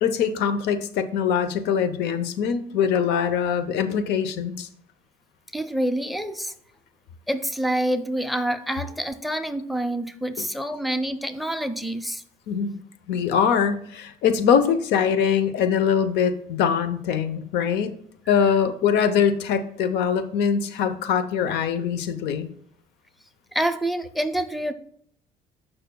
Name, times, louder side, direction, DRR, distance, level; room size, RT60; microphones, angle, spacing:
voice 1, 0.0-4.7 10.4-10.5 12.5-12.8 13.1-18.0 18.3-22.5, left 7 dB, 85° left, 11 dB, 0.8 m, -23 dB
voice 2, 5.5-6.5 7.3-12.2 23.5-24.7, right 1 dB, ahead, 11 dB, 0.6 m, -27 dB
13.5 x 5.7 x 2.3 m, 0.65 s
cardioid pair, 110°, 17 cm